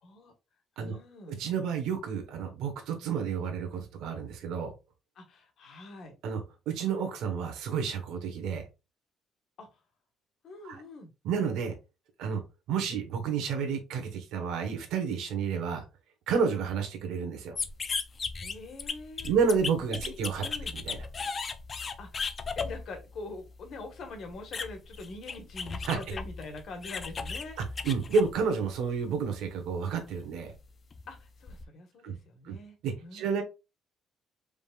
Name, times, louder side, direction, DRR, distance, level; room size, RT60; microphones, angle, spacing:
voice 1, 0.0-0.3 0.8-1.3 5.2-6.1 9.6-9.7 10.4-11.1 18.4-19.4 19.9-20.7 22.0-22.3 22.6-27.6 31.1-32.8 33.0-33.4, left 3 dB, 50° left, 5 dB, 1.4 m, -44 dB
voice 2, 1.3-4.7 6.2-8.6 10.6-10.8 11.2-11.7 12.2-12.4 12.7-15.8 16.3-17.6 19.2-20.4 20.7-21.0 25.8-26.0 27.6-30.5 32.0-32.1 32.4-32.6 32.8-33.4, right 6 dB, 80° right, 4 dB, 1.2 m, -30 dB
sound 1, 17.6-28.9 29.3-31.6, left 5 dB, 30° left, 0.4 m, -37 dB
5.1 x 3.6 x 2.4 m, 0.27 s
cardioid pair, 160°, 0 cm